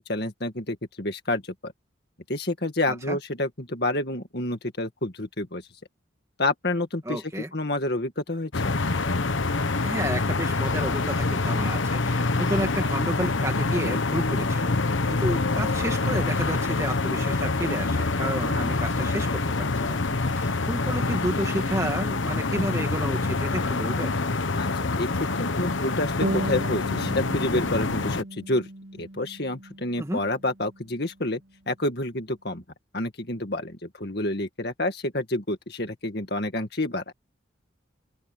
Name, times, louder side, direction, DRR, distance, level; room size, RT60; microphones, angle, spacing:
voice 1, 0.0-1.7 2.3-5.6 6.4-7.2 7.5-8.8 24.6-24.7 25.0-28.7 29.0-31.4 31.7-32.6 32.9-37.1, left 1 dB, 55° left, 2.1 m, -29 dB
voice 2, 2.9-3.2 7.0-7.5 9.8-24.2 30.0-30.2, right 1 dB, 15° right, 2.2 m, -31 dB
sound 1, 8.5-28.2, left 3 dB, 80° left, 1.2 m, -26 dB
sound 2, 26.2-31.2, right 1 dB, 75° right, 2.2 m, -36 dB
head